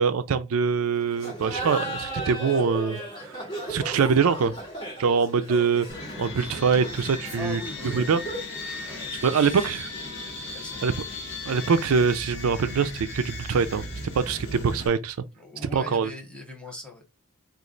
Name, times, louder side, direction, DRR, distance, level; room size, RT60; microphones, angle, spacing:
voice 1, 0.0-3.4 3.7-4.5 5.0-5.9 6.2-7.6 7.9-8.2 8.6-8.9 9.2-9.9 10.8-10.9 11.4-13.9 14.1-15.2 15.6-16.1, right 5 dB, 85° right, 0.4 m, -24 dB
Laughter, 1.1-8.6, right 1 dB, 20° left, 1.8 m, -36 dB
sound 1, 5.9-14.9, left 2 dB, 55° left, 1.4 m, -37 dB
voice 2, 7.3-8.1 8.8-9.8 10.5-10.9 15.3-17.0, left 2 dB, 5° left, 1.1 m, -41 dB
3.1 x 2.5 x 3.8 m
head